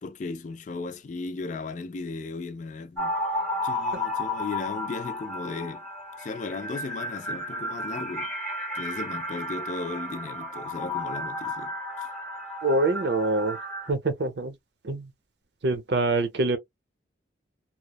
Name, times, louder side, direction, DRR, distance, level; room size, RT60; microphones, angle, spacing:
voice 1, 0.0-3.1 3.6-5.8 6.2-8.3 8.7-12.1, left 3 dB, 40° left, 0.3 m, -36 dB
sound 1, 3.0-13.9, left 1 dB, 5° left, 0.8 m, -33 dB
voice 2, 12.6-13.6 13.9-14.6 14.8-15.1 15.6-16.6, right 2 dB, 65° right, 0.6 m, -25 dB
3.0 x 2.0 x 2.2 m
head